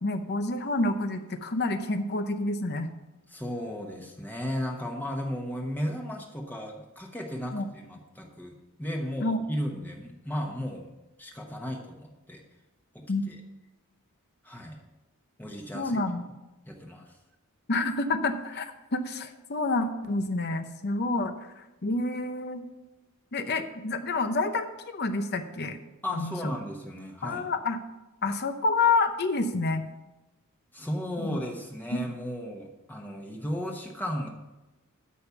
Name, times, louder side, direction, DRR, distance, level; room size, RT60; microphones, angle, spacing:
voice 1, 0.0-2.9 7.5-7.7 9.2-9.4 13.1-13.3 15.7-16.2 17.7-22.6 23.3-25.8 26.1-26.3 27.2-27.8 28.2-29.8 31.2-31.4 31.9-32.0, left 3 dB, 50° left, 8 dB, 0.8 m, -28 dB
voice 2, 3.3-10.9 11.2-12.4 12.9-13.4 14.4-14.8 15.4-16.0 16.7-17.2 26.0-27.5 30.7-34.3, equal, 10° left, 0 dB, 1.1 m, -35 dB
12.5 x 5.3 x 7.1 m, 1.0 s
head